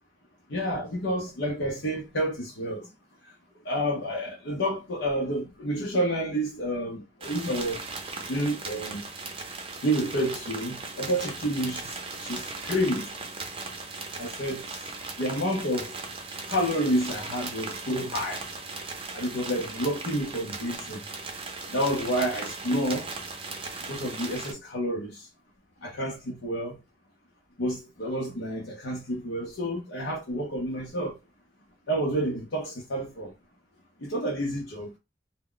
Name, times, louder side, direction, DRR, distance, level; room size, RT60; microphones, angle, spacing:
voice 1, 0.5-2.9 3.6-7.8 8.3-9.0 9.8-13.1 14.2-14.9 15.2-15.9 16.5-18.4 19.1-21.0 21.7-23.1 23.9-25.3 25.8-26.8 27.6-31.2 31.9-33.3 34.0-34.9, equal, 80° left, 0.7 m, -29 dB
sound 1, 7.2-24.5, right 3 dB, 30° right, 0.6 m, -38 dB
2.2 x 2.1 x 3.7 m
head